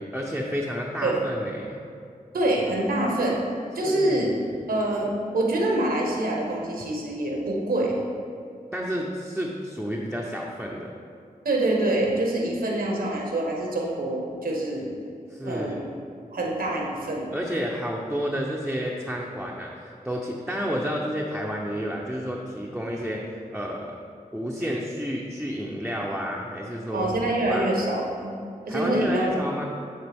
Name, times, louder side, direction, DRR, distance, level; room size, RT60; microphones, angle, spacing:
voice 1, 0.0-1.8 3.8-4.6 8.7-10.9 15.3-15.9 17.3-24.0 24.3-27.2 27.5-27.9 28.7-29.6, equal, 5° right, -3 dB, 0.7 m, -30 dB
voice 2, 2.3-3.4 3.7-4.3 4.7-8.0 11.4-14.9 15.4-15.9 16.3-17.3 26.9-28.3 28.6-29.4, right 1 dB, 80° right, -1 dB, 1.1 m, -25 dB
9.9 x 3.6 x 3.5 m, 2.3 s
cardioid pair, 50°, 15 cm